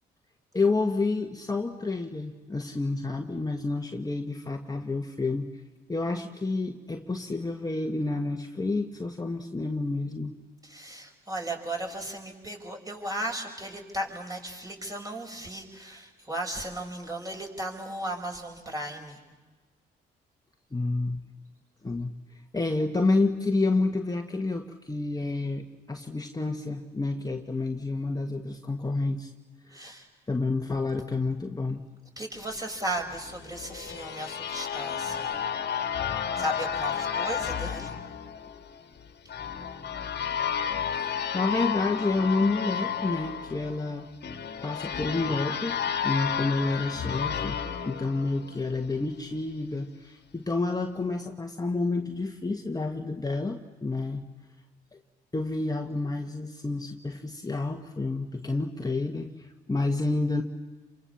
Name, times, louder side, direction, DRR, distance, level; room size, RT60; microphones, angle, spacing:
voice 1, 0.5-5.5 5.9-10.3 20.7-21.2 21.8-29.3 29.6-29.8 30.3-31.8 41.0-44.1 44.6-47.6 47.9-54.3 54.9-55.0 55.3-60.4, left 3 dB, 20° left, 4 dB, 1.6 m, -29 dB
voice 2, 10.7-19.2 29.7-30.1 32.2-35.3 36.4-37.9, right 1 dB, 20° right, 2 dB, 6.7 m, -35 dB
Metallic Discord, 33.2-48.9, left 8 dB, 60° left, 1.8 m, -32 dB
28.5 x 24.0 x 7.2 m, 1.3 s
supercardioid pair, 60°, 19 cm